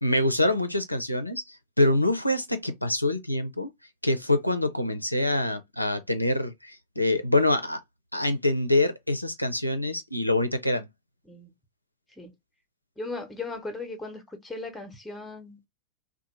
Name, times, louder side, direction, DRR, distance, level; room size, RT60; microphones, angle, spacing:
voice 1, 0.0-3.7 4.0-7.8 8.1-10.9, left 1 dB, 90° left, 0.4 m, -25 dB
voice 2, 13.0-15.6, left 3 dB, 5° left, 0.8 m, -37 dB
2.7 x 2.1 x 2.9 m
figure-of-eight pair, 90°, 0 cm